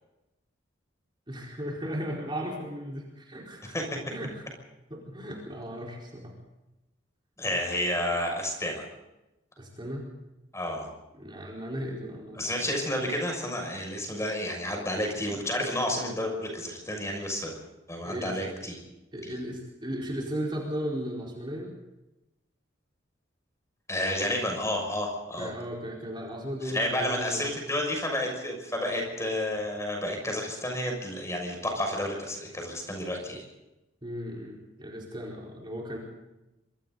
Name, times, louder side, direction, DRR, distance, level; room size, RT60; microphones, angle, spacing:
voice 1, 1.3-3.7 4.1-4.4 4.9-6.3 9.6-10.1 11.1-12.6 18.0-18.4 19.1-21.7 25.4-27.5 34.0-36.0, equal, 25° right, -2 dB, 4.5 m, -36 dB
voice 2, 3.6-4.0 7.4-8.8 10.5-10.9 12.3-17.6 17.9-18.8 19.2-19.3 23.9-25.5 26.6-33.4, left 1 dB, 15° left, 2 dB, 6.4 m, -31 dB
26.0 x 25.0 x 4.1 m, 0.96 s
head